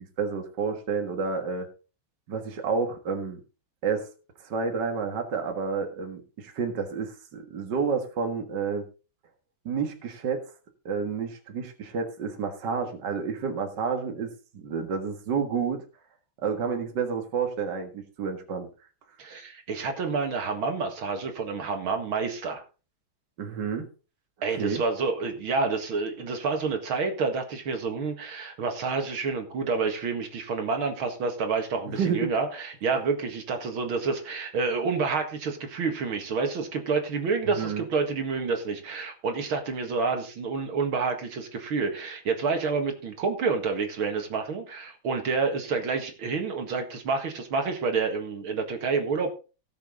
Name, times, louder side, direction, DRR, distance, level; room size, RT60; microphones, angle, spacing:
voice 1, 0.0-1.7 2.3-3.4 3.8-4.1 4.4-8.8 9.7-10.4 10.9-15.8 16.4-18.7 23.4-23.9 24.5-24.8 31.9-32.3 37.4-37.8, right 5 dB, 55° right, 4 dB, 2.2 m, -30 dB
voice 2, 19.2-22.6 24.4-49.3, right 4 dB, 80° right, 4 dB, 2.6 m, -28 dB
17.5 x 7.0 x 3.8 m, 0.34 s
omnidirectional pair, 2.2 m